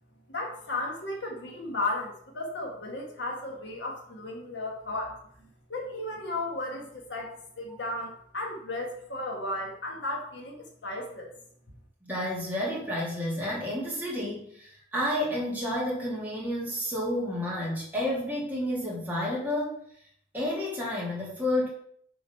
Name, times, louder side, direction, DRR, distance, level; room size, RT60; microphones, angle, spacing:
voice 1, 0.3-5.2 5.7-11.3, left 2 dB, 65° left, 0 dB, 1.5 m, -34 dB
voice 2, 12.0-19.8 20.3-21.7, left 1 dB, 10° right, -6 dB, 2.4 m, -30 dB
6.6 x 3.9 x 5.5 m, 0.66 s
head